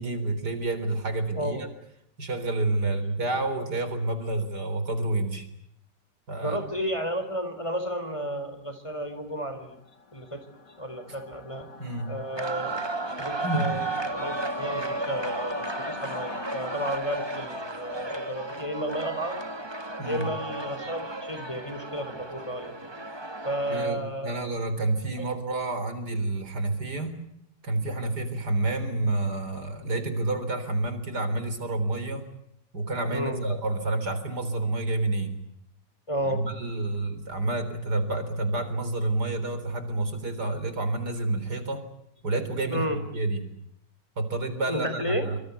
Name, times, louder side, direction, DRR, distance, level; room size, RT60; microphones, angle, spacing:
voice 1, 0.0-1.7 2.2-5.5 6.3-6.6 11.1-11.2 11.8-12.1 13.4-13.8 20.0-20.3 23.7-27.2 27.6-32.3 32.7-35.4 36.2-41.8 42.2-42.9 43.1-43.5 44.2-45.4, right 2 dB, 65° right, 10 dB, 4.4 m, -29 dB
voice 2, 6.4-9.8 10.1-10.4 10.8-11.7 12.1-12.8 13.2-13.8 14.1-19.4 20.0-22.7 23.4-24.5 25.2-25.3 33.1-33.4 36.1-36.4 42.7-43.0 44.7-45.2, right 1 dB, 15° left, 8 dB, 4.0 m, -32 dB
Singing / Musical instrument, 9.8-17.0, left 4 dB, 75° left, 3.3 m, -43 dB
sound 1, 12.4-23.9, right 2 dB, 15° right, 1.6 m, -34 dB
26.0 x 25.5 x 8.3 m, 0.76 s
omnidirectional pair, 1.9 m